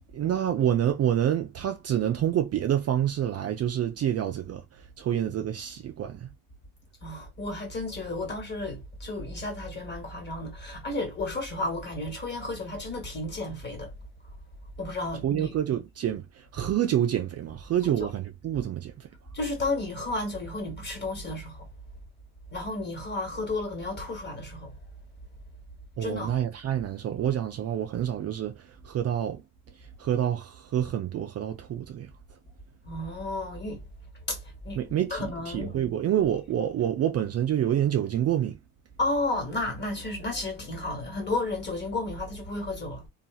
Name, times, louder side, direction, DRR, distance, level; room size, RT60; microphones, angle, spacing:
voice 1, 0.1-4.6 5.0-6.3 15.2-19.1 26.0-29.4 30.0-32.1 34.8-38.6, right 10 dB, 45° right, 0.4 m, -27 dB
voice 2, 7.0-13.9 14.8-15.6 18.0-18.1 19.3-21.7 22.5-24.7 26.0-26.4 32.8-33.8 34.3-34.8 35.1-35.8 39.0-43.1, left 2 dB, 30° left, 1.4 m, -32 dB
2.8 x 2.3 x 2.4 m
cardioid pair, 105°, 37 cm